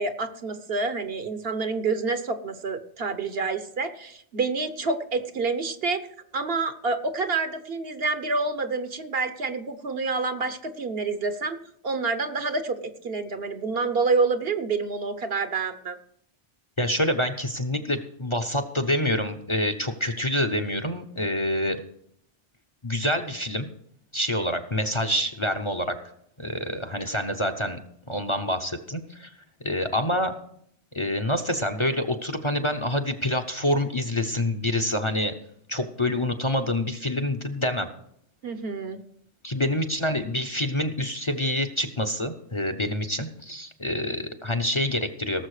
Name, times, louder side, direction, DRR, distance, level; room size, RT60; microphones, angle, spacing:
voice 1, 0.0-6.1 6.3-11.6 11.8-16.0 38.4-39.0, right 4 dB, 60° right, 9 dB, 1.2 m, -28 dB
voice 2, 16.8-21.8 22.8-23.7 24.1-26.0 26.4-27.8 28.1-29.3 29.6-30.3 30.9-35.3 35.7-37.9 39.4-45.5, left 1 dB, 30° left, 8 dB, 0.8 m, -27 dB
18.0 x 7.2 x 4.9 m, 0.69 s
omnidirectional pair, 1.2 m